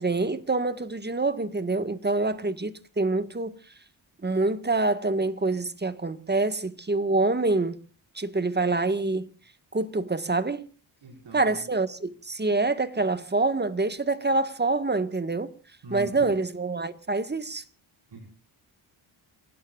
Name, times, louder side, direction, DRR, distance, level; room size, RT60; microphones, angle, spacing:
voice 1, 0.0-3.6 4.2-7.8 8.1-9.3 9.7-10.6 11.3-15.5 15.9-17.6, right 3 dB, 20° right, 1.6 m, -26 dB
voice 2, 11.0-11.6 15.8-16.3 18.1-18.3, right 3 dB, 60° right, 5.5 m, -41 dB
29.5 x 17.0 x 2.5 m
cardioid pair, 80°, 46 cm